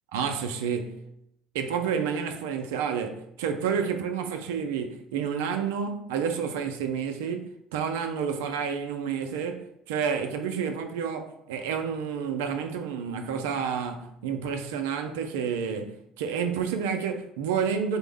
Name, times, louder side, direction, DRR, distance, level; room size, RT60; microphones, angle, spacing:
voice 1, 0.1-1.1 1.5-18.0, right 7 dB, 85° right, 0.3 m, -30 dB
3.8 x 2.0 x 3.5 m
hypercardioid pair, 75°, 0 cm